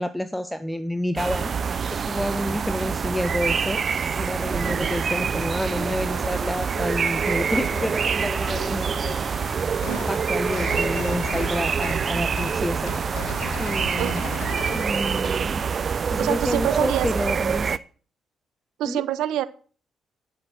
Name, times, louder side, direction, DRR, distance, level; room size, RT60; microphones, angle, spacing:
voice 1, 0.0-9.0 9.9-12.9 13.6-14.2 14.7-15.6 16.1-17.8 18.8-19.0, left 1 dB, 5° left, 11 dB, 0.9 m, -29 dB
sound 1, 1.2-17.8, right 6 dB, 50° right, 0.5 m, -26 dB
sound 2, 5.6-14.4, left 3 dB, 25° left, 2.9 m, -40 dB
sound 3, 9.8-10.2 10.5-12.1 12.4-12.6 12.9-14.9, left 8 dB, 75° left, 1.4 m, -36 dB
voice 2, 16.2-17.1 18.8-19.5, right 12 dB, 75° right, 15 dB, 0.8 m, -26 dB
12.0 x 6.6 x 7.5 m, 0.41 s
hypercardioid pair, 50°, 0 cm